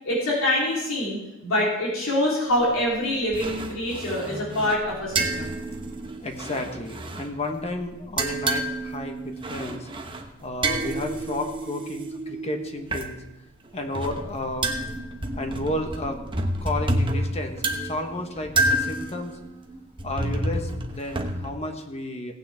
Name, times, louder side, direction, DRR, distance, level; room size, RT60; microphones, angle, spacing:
voice 1, 0.0-5.5, left 1 dB, 75° left, -5 dB, 3.5 m, -25 dB
sound 1, 2.5-3.0 3.3-7.7 8.0-13.1 13.7-21.5, right 1 dB, 25° right, 1.0 m, -29 dB
voice 2, 6.2-9.9 10.4-13.2 13.7-14.7 15.3-16.2 16.6-19.4 20.0-22.3, left 1 dB, 30° left, 4 dB, 1.3 m, -32 dB
17.0 x 9.1 x 3.5 m, 0.91 s
head